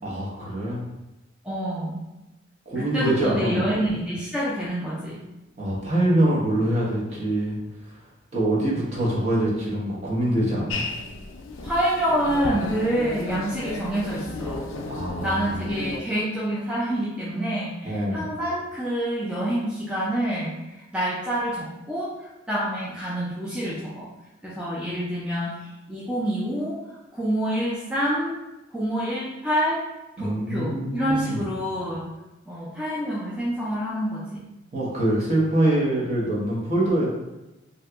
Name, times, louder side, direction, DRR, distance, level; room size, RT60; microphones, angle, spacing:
voice 1, 0.0-0.8 2.7-3.8 5.6-7.6 8.3-10.8 14.9-15.6 17.8-18.3 30.2-31.4 34.7-37.1, right 1 dB, 35° right, -5 dB, 0.8 m, -24 dB
voice 2, 1.4-2.0 2.8-5.2 11.6-14.7 15.2-20.6 20.9-24.1 24.4-26.8 27.1-28.4 28.7-29.8 30.2-32.1 32.5-34.4, equal, 5° right, -8 dB, 0.4 m, -27 dB
sound 1, 10.7-16.0, left 3 dB, 80° left, 0.4 m, -34 dB
2.8 x 2.2 x 3.4 m, 1.0 s
head